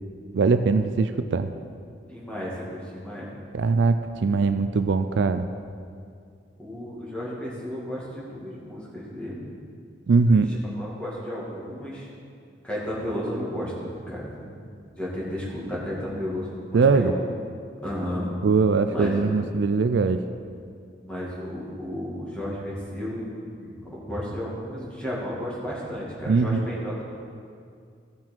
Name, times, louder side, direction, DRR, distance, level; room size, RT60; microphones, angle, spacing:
voice 1, 0.3-1.5 3.5-5.5 10.1-10.5 16.7-17.1 18.4-20.2 26.3-26.6, right 4 dB, 70° right, 10 dB, 0.4 m, -21 dB
voice 2, 2.1-3.3 6.6-9.5 10.3-12.1 12.6-14.7 14.9-17.2 17.8-18.3 18.9-19.4 21.0-27.0, equal, 5° left, -7 dB, 2.2 m, -33 dB
15.0 x 6.0 x 4.5 m, 2.3 s
head